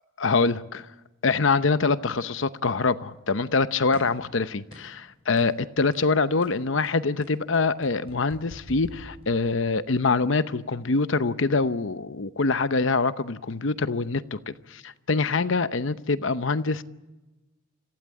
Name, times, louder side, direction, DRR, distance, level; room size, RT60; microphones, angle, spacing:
voice 1, 0.2-0.9 1.2-16.8, left 4 dB, 65° left, 0.8 m, -25 dB
sound 1, 3.9-4.3 4.7-5.0 5.4-5.6 5.9-6.1 6.4-9.7, equal, 30° right, 6.8 m, -46 dB
27.0 x 16.0 x 8.8 m
head